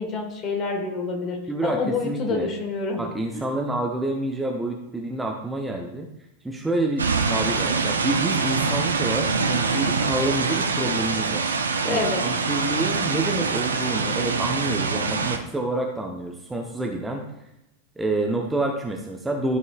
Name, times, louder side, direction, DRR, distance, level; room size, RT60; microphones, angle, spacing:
voice 1, 0.0-3.5 11.8-12.3, left 4 dB, 30° left, 2 dB, 1.6 m, -28 dB
voice 2, 1.5-2.5 3.0-6.1 6.4-11.5 11.8-17.2 18.0-19.6, right 2 dB, 5° right, 1 dB, 0.8 m, -28 dB
sound 1, 7.0-15.4, right 4 dB, 75° right, 0.7 m, -24 dB
12.5 x 5.3 x 2.5 m, 0.86 s
figure-of-eight pair, 90°, 0 cm